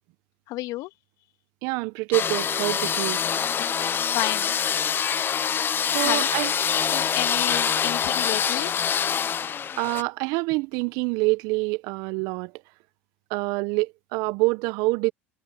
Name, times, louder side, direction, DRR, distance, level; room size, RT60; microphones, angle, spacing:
voice 1, 0.5-0.9 4.1-4.5 6.0-6.3 6.9-8.8, left 18 dB, 60° left, 2.0 m, -31 dB
voice 2, 1.6-3.2 5.9-6.5 9.8-12.5 13.3-15.1, right 25 dB, 65° right, 1.0 m, -26 dB
sound 1, 2.1-10.0, left 8 dB, 30° left, 0.5 m, -25 dB
hypercardioid pair, 80°, 7 cm